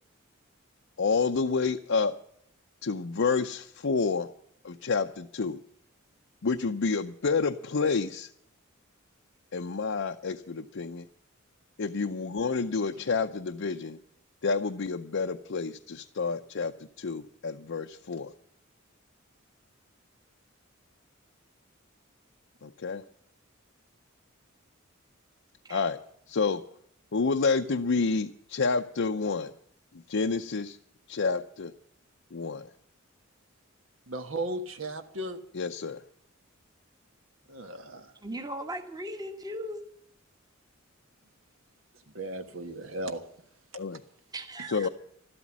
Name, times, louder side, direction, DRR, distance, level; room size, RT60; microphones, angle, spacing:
voice 1, 1.0-2.1 2.8-4.3 4.6-5.6 6.4-8.3 9.5-11.1 11.8-14.0 14.4-18.3 22.6-23.0 25.7-26.0 26.3-26.6 27.1-29.5 30.1-30.8 31.1-31.7 32.3-32.7 35.5-36.0 43.7-44.0 44.7-44.9, left 4 dB, 65° left, 5 dB, 0.6 m, -29 dB
voice 2, 34.1-35.4 37.5-38.1 42.1-43.2 44.6-44.8, right 2 dB, 70° right, 8 dB, 1.4 m, -36 dB
voice 3, 38.2-39.8 44.3-44.9, equal, 20° right, 6 dB, 1.4 m, -38 dB
13.0 x 12.5 x 7.3 m, 0.69 s
head